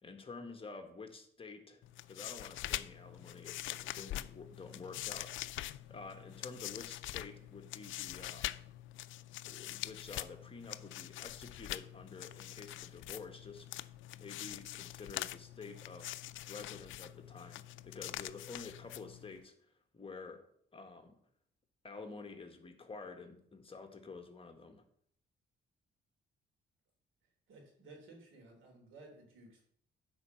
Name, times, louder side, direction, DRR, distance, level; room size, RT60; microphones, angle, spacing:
voice 1, 0.0-1.8 2.1-8.5 9.4-13.7 14.2-16.2 16.5-20.4 20.7-21.2 21.8-24.8, left 4 dB, 30° left, 5 dB, 1.6 m, -50 dB
sound 1, 1.8-19.4, left 15 dB, 75° left, 0.4 m, -44 dB
voice 2, 27.5-29.7, right 2 dB, 80° right, 2 dB, 3.2 m, -56 dB
9.6 x 4.7 x 6.6 m, 0.65 s
cardioid pair, 90°, 20 cm